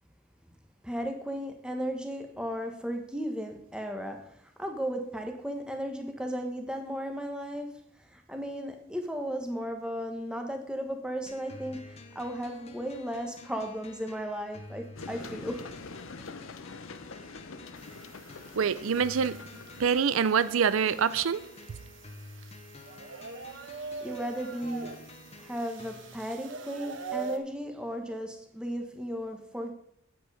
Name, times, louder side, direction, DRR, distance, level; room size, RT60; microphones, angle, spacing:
voice 1, 0.8-15.7 24.0-25.1 25.4-29.7, equal, 5° right, 4 dB, 1.3 m, -35 dB
sound 1, 11.3-26.3, left 2 dB, 30° left, 1.0 m, -50 dB
sound 2, 15.0-21.6, left 4 dB, 80° left, 0.8 m, -46 dB
sound 3, 17.8-27.4, right 5 dB, 65° right, 1.1 m, -44 dB
voice 2, 18.6-19.4 19.8-21.4 21.7-21.8, right 6 dB, 85° right, 15 dB, 0.5 m, -25 dB
9.0 x 8.0 x 4.9 m, 0.69 s
head